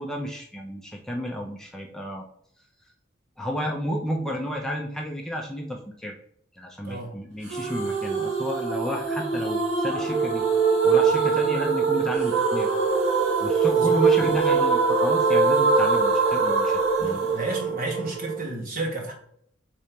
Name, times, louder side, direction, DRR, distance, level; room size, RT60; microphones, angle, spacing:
voice 1, 0.0-2.2 3.4-6.2 6.5-10.4 10.8-12.8 13.4-17.3, equal, 5° left, 0 dB, 0.7 m, -32 dB
voice 2, 6.8-7.2 13.8-14.1 17.0-19.1, right 2 dB, 50° right, -1 dB, 1.8 m, -32 dB
soft harmony, 7.5-18.4, right 4 dB, 85° right, 2.1 m, -22 dB
4.4 x 4.3 x 5.1 m, 0.66 s
head